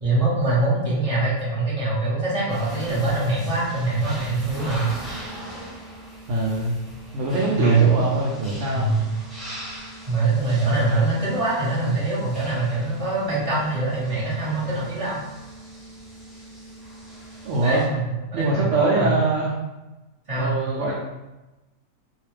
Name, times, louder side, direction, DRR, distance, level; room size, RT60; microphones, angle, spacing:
voice 1, 0.0-4.9 7.6-8.0 8.7-9.1 10.1-15.2 17.6-19.2 20.3-20.6, right 3 dB, 25° right, -7 dB, 0.9 m, -23 dB
sound 1, 2.5-17.9, right 1 dB, ahead, 0.6 m, -40 dB
voice 2, 6.3-6.8 7.1-8.9 17.4-17.8 18.3-19.5 20.4-20.9, right 2 dB, 65° right, -4 dB, 0.8 m, -23 dB
2.4 x 2.3 x 3.2 m, 1.0 s
omnidirectional pair, 1.6 m